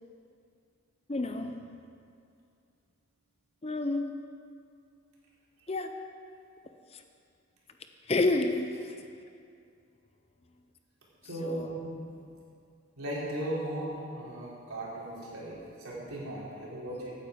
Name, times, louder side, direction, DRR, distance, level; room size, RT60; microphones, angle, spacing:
voice 1, 1.1-1.5 3.6-4.2 5.7-5.9 6.9-7.0 8.1-8.9 11.4-11.8, left 2 dB, 30° left, 6 dB, 0.6 m, -29 dB
voice 2, 11.3-11.8 13.0-17.1, right 1 dB, 90° right, -6 dB, 3.9 m, -37 dB
15.0 x 9.3 x 5.1 m, 2.4 s
head